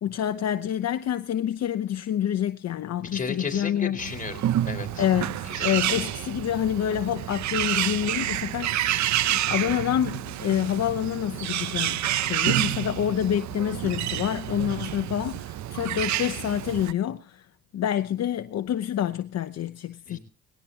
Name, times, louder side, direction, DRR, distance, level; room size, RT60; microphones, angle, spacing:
voice 1, 0.0-4.0 5.0-8.8 9.3-17.4 17.7-20.2, left 10 dB, 60° left, 0.9 m, -27 dB
voice 2, 3.0-5.0 5.5-6.0 20.1-20.2, left 4 dB, 25° left, 4.7 m, -34 dB
Bird, 4.0-16.9, right 13 dB, 70° right, 0.6 m, -29 dB
20.0 x 17.5 x 2.9 m
cardioid pair, 90°, 30 cm